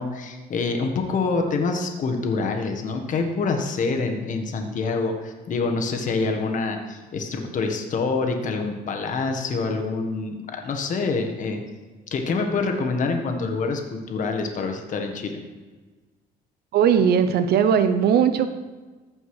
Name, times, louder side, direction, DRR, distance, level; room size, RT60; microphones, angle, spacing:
voice 1, 0.0-11.6 12.1-15.4, left 4 dB, 50° left, 4 dB, 1.5 m, -26 dB
voice 2, 16.7-18.5, right 8 dB, 70° right, 10 dB, 0.9 m, -18 dB
14.5 x 5.3 x 4.9 m, 1.3 s
cardioid pair, 110°, 17 cm